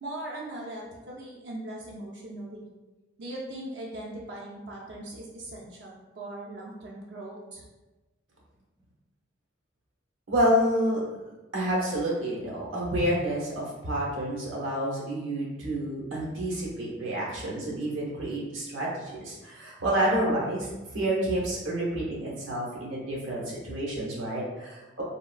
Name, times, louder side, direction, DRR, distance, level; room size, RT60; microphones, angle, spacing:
voice 1, 0.0-2.7 3.2-7.6, right 1 dB, 60° right, -3 dB, 0.4 m, -39 dB
voice 2, 10.3-11.0 11.5-20.7 20.9-25.0, right 1 dB, 85° right, -5 dB, 0.9 m, -29 dB
3.5 x 2.2 x 2.3 m, 1.1 s
head